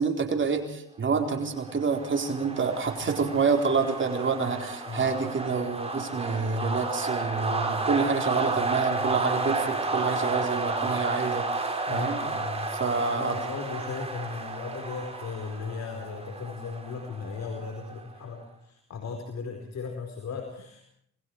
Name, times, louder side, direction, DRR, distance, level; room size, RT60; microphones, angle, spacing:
voice 1, 0.0-12.2 12.7-13.4, right 5 dB, 40° right, 4 dB, 4.3 m, -28 dB
sound 1, 1.4-18.0, right 3 dB, 20° right, 5.8 m, -32 dB
voice 2, 11.9-12.7 13.1-20.8, left 5 dB, 60° left, 4 dB, 4.6 m, -37 dB
27.5 x 21.0 x 4.8 m, 0.68 s
cardioid pair, 90°, 30 cm